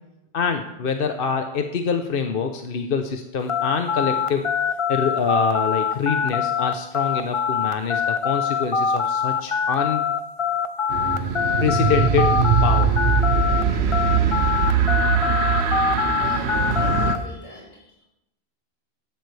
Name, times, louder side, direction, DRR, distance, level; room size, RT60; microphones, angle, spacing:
voice 1, 0.3-4.5 4.9-10.0 11.6-12.3 12.6-12.9, left 6 dB, 60° left, 6 dB, 0.9 m, -25 dB
sound 1, 3.5-13.6 13.9-17.2, left 6 dB, 35° left, 0.6 m, -23 dB
sound 2, 10.9-17.1, right 6 dB, 90° right, 1.1 m, -21 dB
voice 2, 16.2-18.0, left 1 dB, 80° left, -5 dB, 6.1 m, -41 dB
14.5 x 10.5 x 3.3 m, 0.87 s
omnidirectional pair, 1.1 m